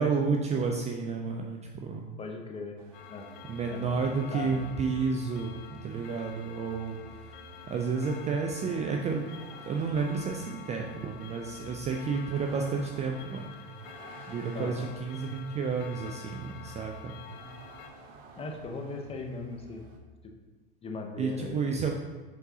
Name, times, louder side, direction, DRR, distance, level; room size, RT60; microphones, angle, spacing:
voice 1, 0.0-2.2 3.5-7.0 7.7-9.3 9.7-13.5 14.3-17.1 21.2-21.9, right 5 dB, 25° right, 2 dB, 0.3 m, -31 dB
voice 2, 2.2-2.8 3.1-3.3 3.7-4.8 14.5-14.9 18.4-19.8 20.8-21.9, left 3 dB, 20° left, 2 dB, 0.6 m, -39 dB
Vehicle, 2.8-20.0, right 3 dB, 60° right, 0.7 m, -50 dB
Clock, 2.9-17.9, left 9 dB, 65° left, 0.6 m, -48 dB
4.7 x 3.8 x 2.7 m, 1.3 s
hypercardioid pair, 95°, 29 cm